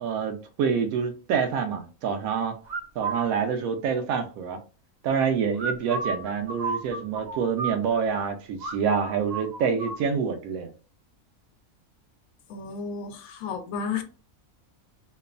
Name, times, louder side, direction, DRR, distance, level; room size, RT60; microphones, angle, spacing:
voice 1, 0.0-2.6 3.0-4.6 5.0-10.7, right 6 dB, 80° right, 1.0 m, -27 dB
sound 1, 2.7-3.3 5.5-8.3 8.6-8.7 9.0-10.0, right 4 dB, 55° right, 0.8 m, -32 dB
voice 2, 12.5-14.0, left 6 dB, 75° left, 1.0 m, -32 dB
3.0 x 2.0 x 2.4 m
omnidirectional pair, 1.5 m